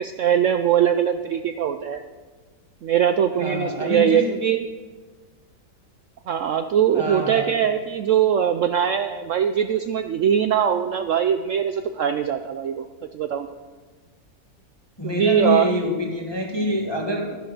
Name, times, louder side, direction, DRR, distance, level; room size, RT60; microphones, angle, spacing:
voice 1, 0.0-2.0 2.8-4.7 6.3-12.9 13.1-13.5 15.0-15.7, right 9 dB, 85° right, 9 dB, 0.6 m, -21 dB
voice 2, 3.4-4.3 6.9-7.5 15.0-17.4, left 1 dB, 15° left, 2 dB, 1.2 m, -26 dB
11.0 x 10.5 x 6.5 m, 1.4 s
omnidirectional pair, 2.0 m